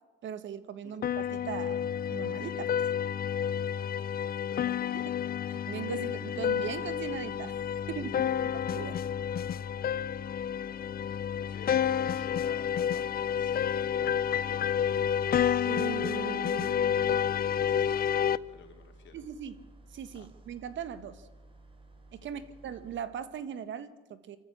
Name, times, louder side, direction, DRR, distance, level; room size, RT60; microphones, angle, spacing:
voice 1, 0.2-2.7 5.5-7.5 7.9-8.3 8.7-9.0 15.6-17.2 19.1-19.7 19.9-21.2 22.1-24.4, right 8 dB, 70° right, 13 dB, 1.6 m, -39 dB
sound 1, 1.0-18.4, left 9 dB, 50° left, 0.6 m, -30 dB
voice 2, 4.5-5.1 8.1-8.2 11.4-15.1 17.6-19.2 20.1-20.3 22.3-22.4, left 7 dB, 70° left, 5 dB, 3.6 m, -52 dB
sound 2, 6.4-23.0, right 1 dB, 25° right, 4.3 m, -55 dB
25.0 x 14.0 x 8.6 m, 1.3 s
cardioid pair, 90°, 20 cm